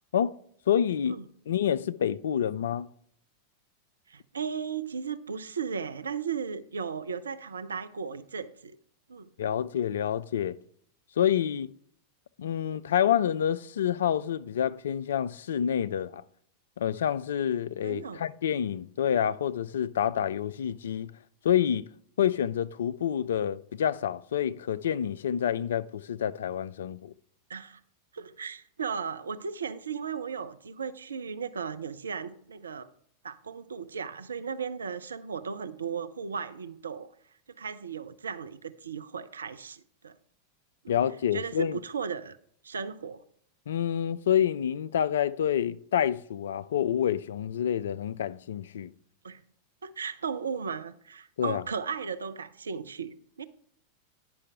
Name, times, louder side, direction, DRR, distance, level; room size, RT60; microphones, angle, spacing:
voice 1, 0.7-1.2 1.5-2.9 9.4-10.6 11.2-11.7 12.4-16.2 16.8-21.1 21.4-21.9 22.2-27.1 40.9-41.8 43.7-48.9 51.4-51.6, left 9 dB, 65° left, 0.3 m, -28 dB
voice 2, 4.1-8.8 9.1-9.3 17.8-18.3 27.5-27.8 28.1-32.9 33.2-37.1 37.5-40.2 40.8-41.0 41.3-42.4 42.6-43.2 49.2-49.4 49.8-53.4, right 6 dB, 70° right, 0.4 m, -36 dB
10.0 x 5.5 x 4.8 m
figure-of-eight pair, 90°, 0 cm